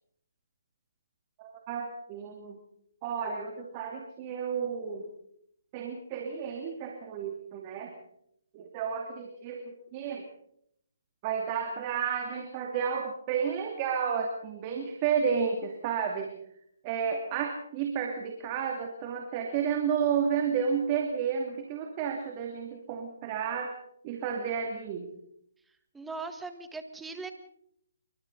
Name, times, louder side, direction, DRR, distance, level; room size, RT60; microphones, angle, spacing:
voice 1, 1.4-2.6 3.0-5.1 5.7-7.9 8.5-10.3 11.2-16.3 16.8-23.7 24.0-25.1, right 7 dB, 30° right, 2 dB, 2.6 m, -31 dB
voice 2, 25.9-27.3, right 3 dB, 5° right, 8 dB, 1.8 m, -39 dB
29.0 x 24.0 x 4.1 m, 0.73 s
hypercardioid pair, 150°, 0 cm